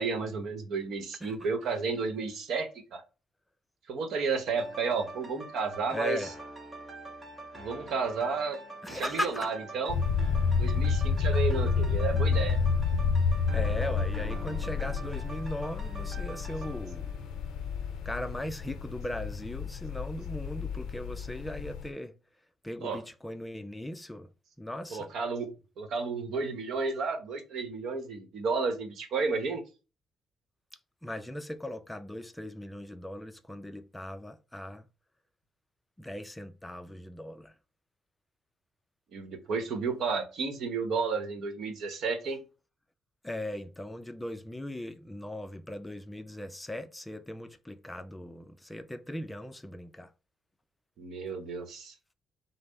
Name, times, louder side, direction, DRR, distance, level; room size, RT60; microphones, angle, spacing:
voice 1, 0.0-3.0 3.9-6.3 7.6-8.6 8.9-10.0 10.6-12.6 22.8-23.0 24.9-25.5 25.8-29.6 39.1-42.4 51.0-52.1, right 4 dB, 75° right, 0.9 m, -32 dB
sound 1, 4.5-18.3 18.7-18.8, right 2 dB, 30° right, 1.1 m, -45 dB
voice 2, 5.9-6.3 8.8-9.5 11.3-11.4 13.5-17.1 18.1-22.1 22.6-24.3 24.6-25.1 31.0-34.9 36.0-37.5 43.2-50.1, left 1 dB, 10° left, 0.4 m, -38 dB
sound 2, 9.9-21.9, left 5 dB, 80° left, 0.4 m, -30 dB
5.3 x 2.0 x 3.9 m
cardioid pair, 90°, 0 cm